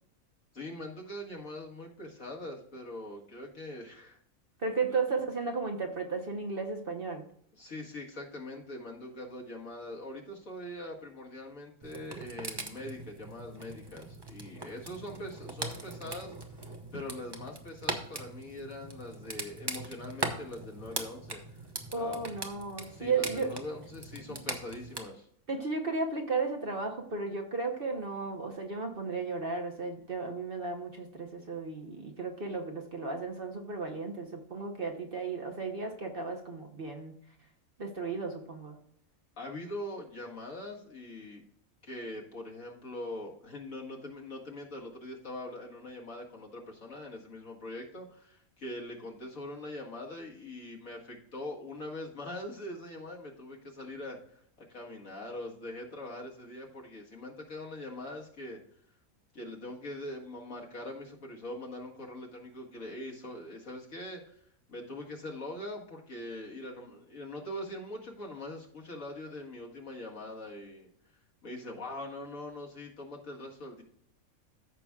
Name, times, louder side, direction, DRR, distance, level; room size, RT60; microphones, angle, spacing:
voice 1, 0.5-4.2 4.9-5.0 7.6-16.3 16.9-21.4 22.0-22.3 22.9-25.3 39.4-41.4 41.8-54.4 54.7-58.6 59.3-64.4 64.7-70.9 71.4-73.8, left 1 dB, 70° left, -1 dB, 2.2 m, -42 dB
voice 2, 4.6-7.3 21.9-23.5 25.5-37.1 37.8-38.8, right 4 dB, 45° right, 3 dB, 1.1 m, -34 dB
sound 1, 11.8-25.0, right 2 dB, 20° right, 0.8 m, -41 dB
14.0 x 6.0 x 2.4 m, 0.67 s
omnidirectional pair, 1.5 m